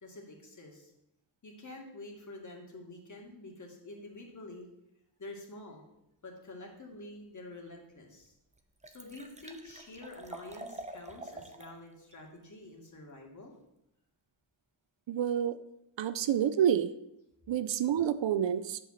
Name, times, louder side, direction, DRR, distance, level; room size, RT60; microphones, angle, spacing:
voice 1, 0.0-0.9 1.4-4.7 5.2-5.8 6.2-8.3 8.9-13.5, left 2 dB, 40° left, 1 dB, 2.4 m, -48 dB
Liquid, 7.7-7.8 8.2-8.3 8.5-11.8 12.1-12.2, right 2 dB, 15° right, 0.8 m, -47 dB
voice 2, 15.1-15.6 16.0-16.9 17.5-18.8, right 9 dB, 70° right, 13 dB, 0.7 m, -28 dB
9.9 x 5.4 x 7.2 m, 0.84 s
wide cardioid pair, 145°, 46 cm